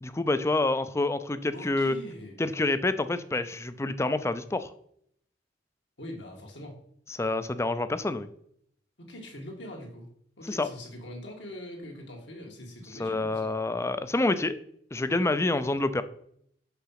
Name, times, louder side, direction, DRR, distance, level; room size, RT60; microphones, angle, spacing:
voice 1, 0.0-2.0 2.4-4.7 7.1-8.3 10.4-10.7 13.0-14.6 14.9-16.0, left 2 dB, 15° left, 12 dB, 0.4 m, -27 dB
voice 2, 1.5-2.4 6.0-6.8 9.0-10.1 10.4-13.5 15.6-15.8, left 1 dB, 75° left, 1 dB, 2.0 m, -43 dB
5.9 x 5.7 x 5.7 m, 0.68 s
head